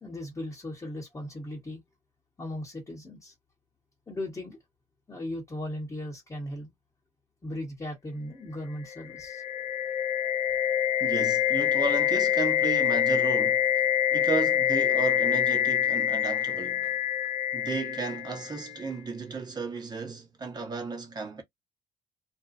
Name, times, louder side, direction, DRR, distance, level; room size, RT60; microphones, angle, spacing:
voice 1, 0.0-1.8 2.4-3.3 4.1-4.6 5.1-6.7 7.4-9.4, left 1 dB, 20° left, 1.1 m, -37 dB
sound 1, 8.9-18.8, left 10 dB, 40° left, 0.6 m, -26 dB
voice 2, 11.0-13.7 14.1-17.0 17.5-21.4, right 4 dB, 25° right, 1.1 m, -34 dB
2.6 x 2.3 x 2.5 m
cardioid pair, 110°, 17 cm